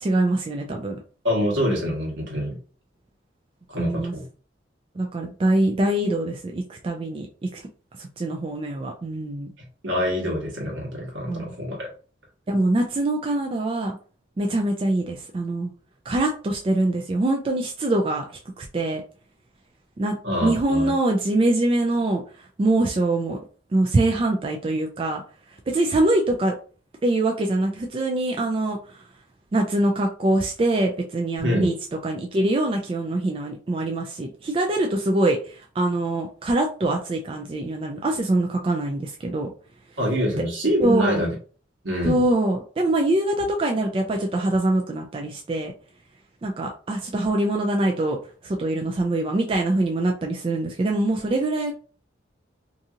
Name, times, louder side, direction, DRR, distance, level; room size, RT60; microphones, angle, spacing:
voice 1, 0.0-1.0 3.8-4.1 5.0-7.3 7.5-7.6 8.0-9.5 11.3-11.5 12.5-14.0 14.4-15.7 16.1-18.2 18.6-19.0 20.0-22.2 22.6-23.4 23.7-25.2 25.7-26.6 27.0-28.8 29.5-31.7 32.0-39.5 40.8-41.2 42.0-45.7 46.4-48.2 48.4-51.7, right 2 dB, 30° right, 2 dB, 0.3 m, -23 dB
voice 2, 1.2-2.6 3.7-4.2 9.8-11.9 20.2-20.9 31.4-31.7 40.0-41.3 41.8-42.2, equal, 80° right, -1 dB, 1.2 m, -25 dB
2.7 x 2.6 x 2.4 m, 0.39 s
head